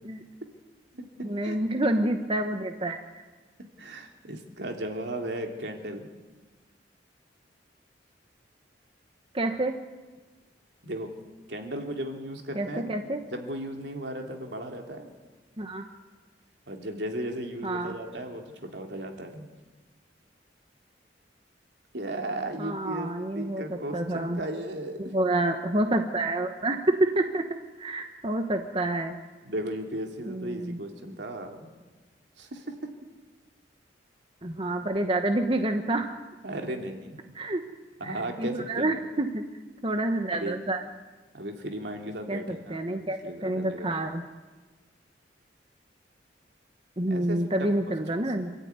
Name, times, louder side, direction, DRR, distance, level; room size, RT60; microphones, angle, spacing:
voice 1, 1.2-3.0 9.3-9.7 12.5-13.2 15.6-15.8 17.6-17.9 22.6-24.4 25.0-27.4 27.8-29.2 30.3-30.8 34.4-36.1 37.3-37.6 38.0-39.4 39.8-40.8 42.3-44.2 47.0-48.5, right 1 dB, 30° right, 5 dB, 1.2 m, -28 dB
voice 2, 3.8-6.1 10.8-11.1 11.5-12.9 13.3-15.1 16.7-19.5 21.9-23.1 23.3-25.1 29.4-31.7 32.4-32.6 36.4-37.2 38.0-38.9 40.3-40.5 41.3-44.0 47.1-47.7 48.1-48.3, right 1 dB, 70° right, 3 dB, 3.2 m, -36 dB
27.0 x 13.5 x 9.6 m, 1.3 s
head